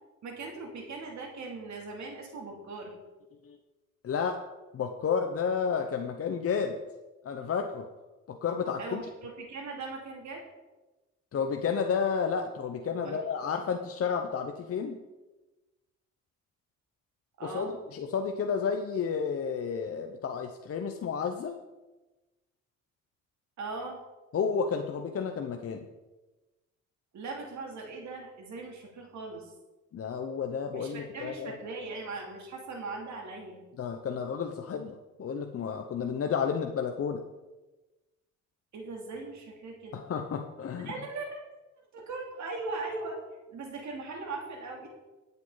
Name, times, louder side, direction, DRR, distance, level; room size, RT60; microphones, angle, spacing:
voice 1, 0.2-2.9 8.8-10.5 13.0-13.2 17.4-17.8 23.6-24.0 27.1-29.5 30.7-33.6 38.7-40.0 40.8-41.4 41.8-43.2 43.5-44.9, right 3 dB, 70° right, 1 dB, 2.9 m, -39 dB
voice 2, 4.0-4.4 4.7-6.8 7.2-7.9 8.3-9.0 11.3-15.0 17.4-21.6 24.3-25.9 29.9-31.6 33.8-37.2 39.9-40.9, left 6 dB, 50° left, 5 dB, 0.9 m, -31 dB
19.0 x 8.0 x 4.0 m, 1.1 s
cardioid pair, 90°, 30 cm